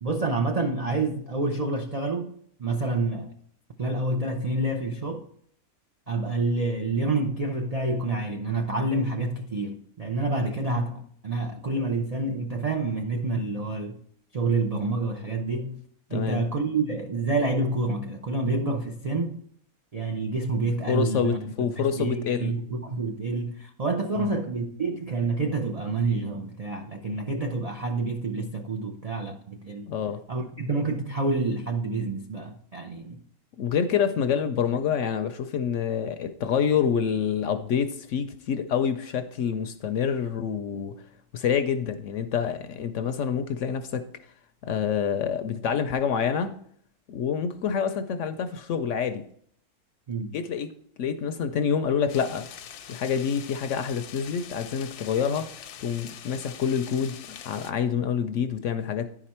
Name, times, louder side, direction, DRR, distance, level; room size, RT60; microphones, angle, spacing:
voice 1, 0.0-2.3 2.6-3.3 3.8-5.3 6.1-14.0 14.3-15.8 16.1-19.4 19.9-29.9 30.3-33.2 50.1-50.3, right 3 dB, 75° right, 0.3 m, -28 dB
voice 2, 16.1-16.4 20.9-22.5 24.2-24.3 29.9-30.2 33.6-41.0 41.3-44.0 44.6-46.5 47.1-49.2 50.3-50.7 51.0-52.5 52.9-59.1, left 7 dB, 65° left, 0.8 m, -27 dB
sound 1, 52.1-57.7, left 9 dB, 85° left, 1.2 m, -44 dB
10.5 x 5.0 x 4.3 m
omnidirectional pair, 1.6 m